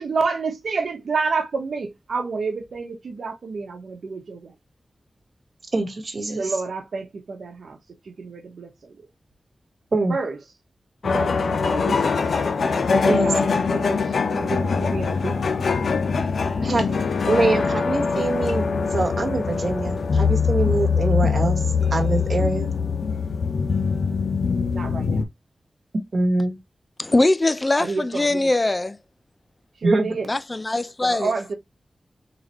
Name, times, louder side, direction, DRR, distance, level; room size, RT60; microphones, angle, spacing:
voice 1, 0.0-4.5 6.4-7.8 8.1-8.9 10.1-10.4 11.0-12.2 12.9-14.0 14.3-15.6 16.6-17.0 24.7-25.3 27.8-28.5 29.8-30.3 31.0-31.5, right 4 dB, 90° right, 0.9 m, -29 dB
voice 2, 5.7-6.6 9.9-10.2 13.0-13.3 16.6-16.9 17.3-18.6 18.9-21.6 21.9-22.7 26.1-26.6 29.8-30.1, right 2 dB, 50° right, 1.2 m, -24 dB
sound 1, 11.0-25.2, left 5 dB, 85° left, 0.6 m, -22 dB
voice 3, 27.0-29.0 30.3-31.3, left 2 dB, 30° left, 0.4 m, -21 dB
3.9 x 3.2 x 2.9 m
wide cardioid pair, 85°, 0 cm